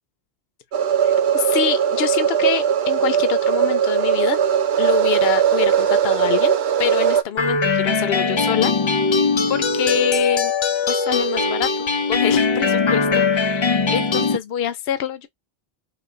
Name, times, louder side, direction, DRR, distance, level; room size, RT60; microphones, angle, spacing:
sound 1, 0.7-7.2, right 8 dB, 90° right, 0.9 m, -19 dB
voice 1, 1.0-4.4 4.8-8.8 9.5-10.5 10.9-11.7 12.1-15.3, left 9 dB, 75° left, 0.8 m, -25 dB
sound 2, 7.4-14.4, left 4 dB, 50° left, 0.3 m, -20 dB
3.2 x 3.1 x 3.7 m
omnidirectional pair, 1.0 m